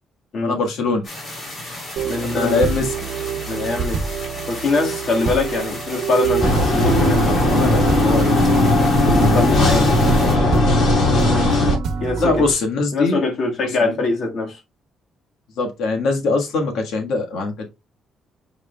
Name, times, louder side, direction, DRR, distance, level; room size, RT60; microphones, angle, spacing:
voice 1, 0.4-1.0 2.3-2.9 12.2-13.2 13.6-13.9 15.6-17.7, left 3 dB, 80° left, 1.5 m, -21 dB
sound 1, 1.0-10.4, left 1 dB, 30° left, 3.2 m, -34 dB
sound 2, 2.0-12.5, right 6 dB, 65° right, 1.0 m, -25 dB
voice 2, 2.1-2.7 3.5-4.0 4.5-8.4 9.0-10.6 12.0-12.3 12.9-14.6, left 3 dB, 45° left, 1.7 m, -23 dB
sound 3, 6.4-11.8, left 2 dB, 65° left, 2.5 m, -17 dB
8.6 x 4.9 x 2.3 m
cardioid pair, 175°, 0 cm